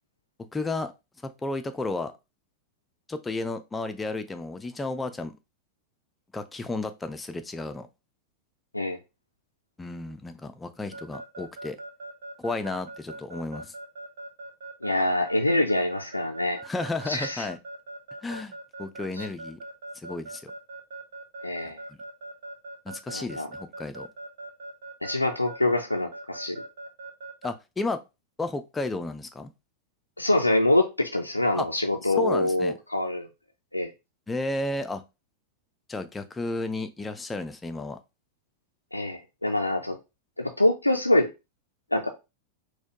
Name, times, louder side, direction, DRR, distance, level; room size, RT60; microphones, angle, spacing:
voice 1, 0.5-0.9 1.2-2.1 3.1-5.4 6.3-7.9 9.8-11.8 12.4-13.7 16.6-17.6 18.2-18.5 18.8-19.6 20.0-20.5 21.9-22.0 22.9-24.1 27.4-28.0 28.4-29.5 31.5-31.7 32.0-32.7 34.3-35.0 35.9-38.0, left 2 dB, 10° left, 0.4 m, -32 dB
Keyboard (musical) / Alarm, 10.9-27.5, right 2 dB, 60° right, 1.0 m, -40 dB
voice 2, 14.8-16.6 17.1-17.5 19.2-19.3 21.4-21.8 23.1-23.5 25.0-26.6 30.2-33.3 33.7-33.9 38.9-40.0 40.4-41.3 41.9-42.1, left 1 dB, 85° left, 0.3 m, -25 dB
4.1 x 2.2 x 2.8 m
figure-of-eight pair, 90°, 0 cm